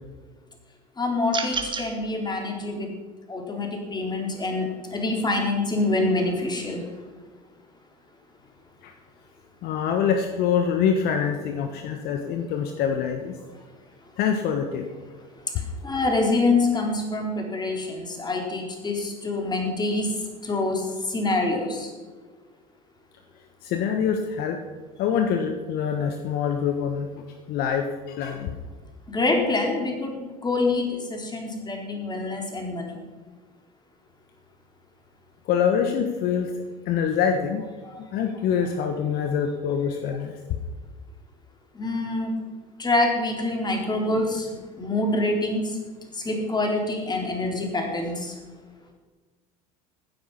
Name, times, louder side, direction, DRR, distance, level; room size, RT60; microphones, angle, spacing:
voice 1, 1.0-2.9 3.3-6.8 15.8-20.1 20.4-21.9 29.1-33.0 41.8-42.3 42.8-44.5 44.8-45.6 46.2-48.3, left 2 dB, 20° left, 1 dB, 4.0 m, -26 dB
sound 1, 1.3-1.9, right 4 dB, 25° right, 2.5 m, -29 dB
voice 2, 9.6-13.4 14.2-14.9 23.6-24.6 25.0-28.5 35.5-36.5 36.8-37.6 38.1-40.4, left 7 dB, 60° left, 5 dB, 1.3 m, -25 dB
15.5 x 9.9 x 5.7 m, 1.4 s
hypercardioid pair, 75°, 19 cm